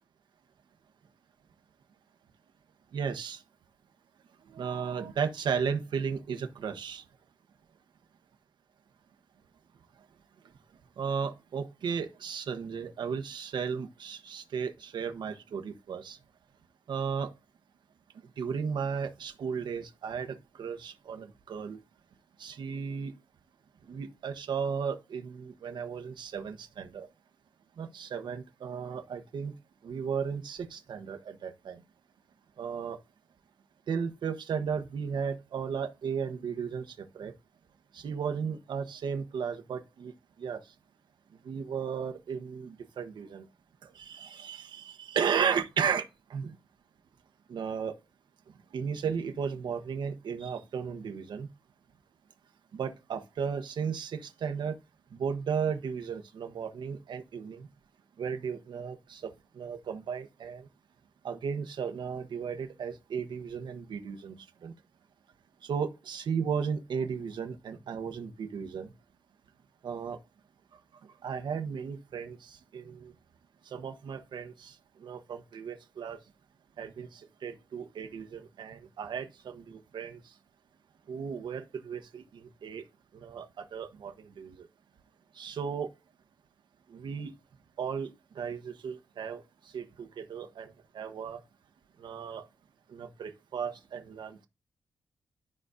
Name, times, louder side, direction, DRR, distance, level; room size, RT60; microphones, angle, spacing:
voice 1, 2.9-3.4 4.5-7.0 11.0-16.2 16.9-17.3 18.4-21.8 22.4-23.1 23.9-27.1 27.8-29.5 29.8-31.8 32.6-33.0 33.9-36.8 37.1-37.3 37.9-40.1 40.4-40.6 41.4-43.4 43.8-46.6 47.5-47.9 48.7-51.5 52.7-54.7 55.1-57.7 58.2-59.3 59.6-60.7 61.2-64.4 64.6-64.7 65.6-68.9 69.8-70.2 71.2-73.1 73.7-74.7 75.0-76.2 76.8-80.2 81.1-82.8 83.1-84.6 85.4-85.9 86.9-87.3 87.8-88.1 88.3-89.4 89.7-91.4 92.0-92.4 92.9-94.5, right 6 dB, 75° right, 1.1 m, -35 dB
13.0 x 4.9 x 2.6 m
wide cardioid pair, 155°, 8 cm